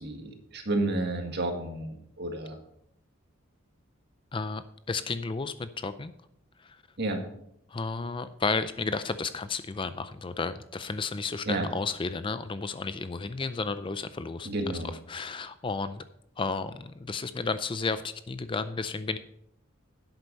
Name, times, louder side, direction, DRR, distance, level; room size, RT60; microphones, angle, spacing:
voice 1, 0.0-2.6 7.0-7.2 11.5-11.7 14.4-14.9, right 2 dB, 50° right, 4 dB, 1.9 m, -31 dB
voice 2, 4.3-6.1 6.6-6.8 7.7-14.5 15.1-16.0 16.4-19.2, left 4 dB, 25° left, 12 dB, 0.4 m, -32 dB
11.0 x 8.0 x 5.4 m, 0.74 s
head